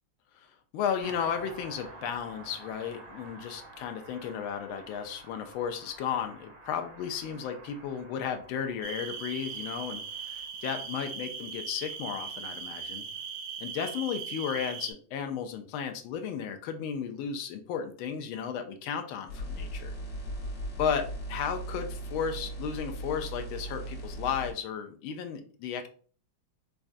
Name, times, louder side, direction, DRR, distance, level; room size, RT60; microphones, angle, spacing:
voice 1, 0.4-13.0 13.6-19.9 20.8-25.9, left 7 dB, 75° left, 6 dB, 1.3 m, -34 dB
Car passing by, 1.0-11.0 11.2-11.3, right 2 dB, 60° right, 0.9 m, -50 dB
sound 1, 8.8-14.9, right 6 dB, 80° right, 1.4 m, -39 dB
sound 2, 19.3-24.5, right 1 dB, 60° left, 1.9 m, -38 dB
5.2 x 2.3 x 2.4 m, 0.43 s
omnidirectional pair, 2.4 m